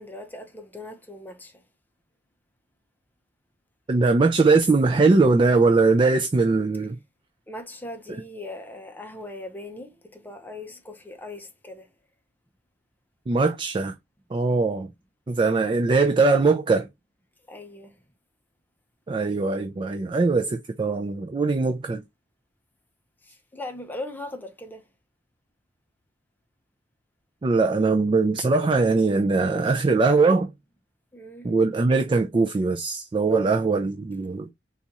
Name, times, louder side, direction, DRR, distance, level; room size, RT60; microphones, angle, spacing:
voice 1, 0.0-1.6 7.5-11.9 14.4-14.6 17.5-17.9 23.2-24.8 31.1-31.5 34.2-34.3, left 2 dB, 10° left, 0.6 m, -39 dB
voice 2, 3.9-7.0 13.3-13.9 14.3-14.9 15.3-16.9 19.1-22.0 27.4-30.5 31.4-34.5, right 3 dB, 30° right, 0.3 m, -21 dB
4.0 x 2.4 x 2.9 m
head